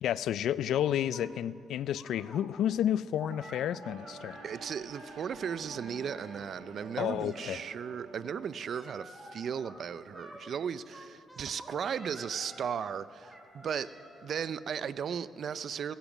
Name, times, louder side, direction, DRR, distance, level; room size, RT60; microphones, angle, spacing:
voice 1, 0.0-4.4 7.0-7.6, left 10 dB, 75° left, 0.3 m, -31 dB
sound 1, 0.7-1.3 2.0-2.4 3.2-4.5 4.9-6.4 7.1-7.4 8.7-9.7 10.1-10.4 10.9-12.6 13.2-14.3, equal, 5° right, 2.6 m, -50 dB
sound 2, 3.8-8.9, right 4 dB, 90° right, 1.5 m, -50 dB
voice 2, 4.4-13.9 14.2-15.9, right 7 dB, 55° right, 0.5 m, -36 dB
17.0 x 10.5 x 6.0 m
cardioid pair, 90°, 0 cm